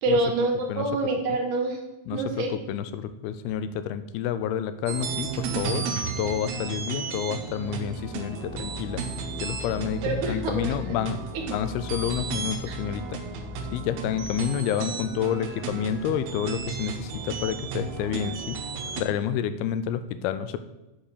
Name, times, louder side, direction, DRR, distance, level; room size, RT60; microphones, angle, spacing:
voice 1, 0.0-1.8 2.1-2.6 5.8-5.9 10.0-10.8 11.3-11.4 12.7-12.8 18.9-19.1, right 2 dB, 65° right, 2 dB, 2.4 m, -26 dB
voice 2, 2.1-9.0 9.4-11.2 11.5-13.2 13.7-18.6 19.0-20.6, left 9 dB, 90° left, 12 dB, 2.6 m, -29 dB
sound 1, 4.9-19.0, right 5 dB, 80° right, 2.8 m, -34 dB
sound 2, 8.5-14.3, left 5 dB, 70° left, 1.9 m, -40 dB
7.5 x 4.6 x 6.7 m, 0.98 s
omnidirectional pair, 4.4 m